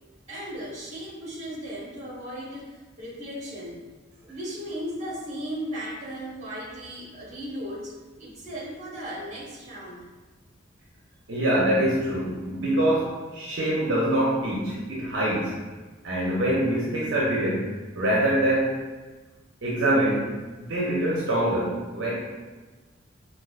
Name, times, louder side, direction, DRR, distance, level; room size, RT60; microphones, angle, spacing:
voice 1, 0.3-3.8 4.2-7.9 8.2-10.0, equal, 40° right, -5 dB, 1.1 m, -36 dB
voice 2, 11.3-15.5 16.0-17.7 18.0-18.7 19.6-22.1, right 1 dB, 65° right, -6 dB, 0.7 m, -24 dB
4.5 x 2.4 x 2.4 m, 1.3 s
head